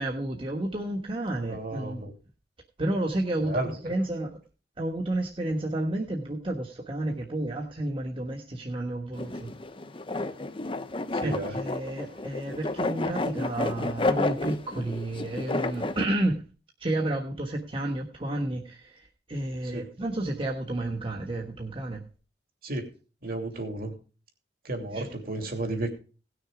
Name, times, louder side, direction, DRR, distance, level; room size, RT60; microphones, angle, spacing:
voice 1, 0.0-2.1 2.8-4.4 4.8-9.5 11.2-16.4 16.8-22.0 24.9-25.2, right 1 dB, 30° right, 1 dB, 1.3 m, -31 dB
voice 2, 1.4-2.1 3.4-3.7 11.1-11.6 19.7-19.8 22.6-22.8 23.2-23.9 24.6-25.9, right 2 dB, 55° right, 4 dB, 2.8 m, -32 dB
sound 1, 9.1-16.0, left 2 dB, 30° left, 0.8 m, -31 dB
17.5 x 6.5 x 4.9 m, 0.36 s
head